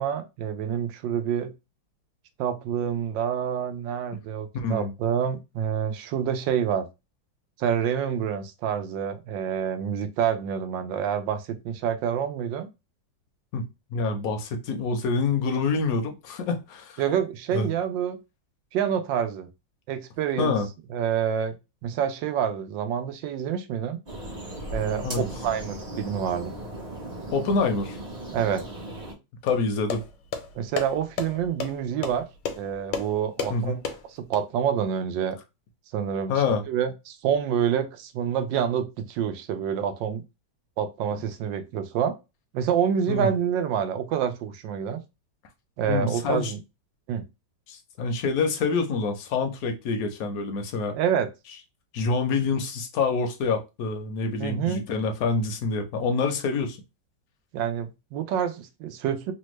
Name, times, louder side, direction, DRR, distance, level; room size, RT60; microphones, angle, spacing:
voice 1, 0.0-1.5 2.4-6.9 7.6-12.7 17.0-18.2 18.7-19.5 19.9-20.6 20.9-21.5 21.8-24.0 24.7-25.1 25.4-26.5 28.3-28.6 30.5-32.3 32.6-33.8 34.3-35.4 35.9-36.3 36.7-40.2 40.8-42.2 42.5-45.0 45.8-46.6 47.1-47.2 50.9-51.3 54.4-54.8 57.5-59.3, right 8 dB, 85° right, 1.3 m, -27 dB
voice 2, 4.5-4.9 13.5-13.6 13.9-17.0 17.5-17.7 20.4-20.7 25.0-25.3 27.3-28.0 29.4-30.0 33.5-33.8 36.3-36.6 43.1-43.3 45.9-46.5 47.7-51.0 51.9-56.8, left 4 dB, 65° left, 1.0 m, -26 dB
sound 1, 24.1-29.1, right 1 dB, 35° right, 0.7 m, -37 dB
sound 2, 29.5-34.4, left 6 dB, 85° left, 1.4 m, -34 dB
3.4 x 2.2 x 3.0 m
omnidirectional pair, 2.0 m